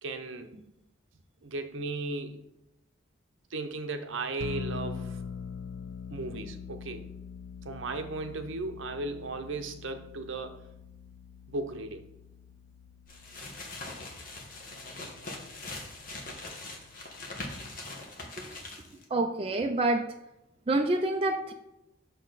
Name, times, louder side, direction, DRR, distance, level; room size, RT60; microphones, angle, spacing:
voice 1, 0.0-0.6 1.4-2.4 3.5-5.2 6.1-7.1 7.6-10.7 11.5-12.1, right 3 dB, 70° right, 7 dB, 0.8 m, -36 dB
sound 1, 4.4-17.8, left 6 dB, 65° left, 0.4 m, -44 dB
sound 2, 13.1-19.0, left 2 dB, 40° left, 1.3 m, -42 dB
voice 2, 19.1-20.1 20.7-21.5, right 2 dB, 25° right, 3 dB, 0.4 m, -27 dB
6.8 x 6.3 x 4.0 m, 0.90 s
head